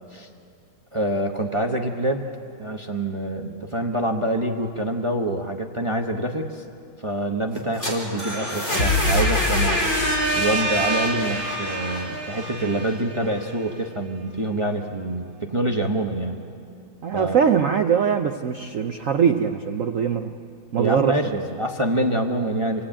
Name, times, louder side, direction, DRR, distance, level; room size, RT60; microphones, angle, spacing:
voice 1, 0.9-2.2 2.6-6.6 7.0-9.9 10.4-16.4 17.1-17.4 20.8-22.8, right 1 dB, 25° right, 3 dB, 0.6 m, -26 dB
sound 1, 7.5-13.4, equal, 30° left, 5.1 m, -24 dB
voice 2, 17.0-20.3 20.7-21.2, right 7 dB, 80° right, 6 dB, 0.7 m, -21 dB
27.0 x 18.0 x 8.8 m, 2.4 s
omnidirectional pair, 2.4 m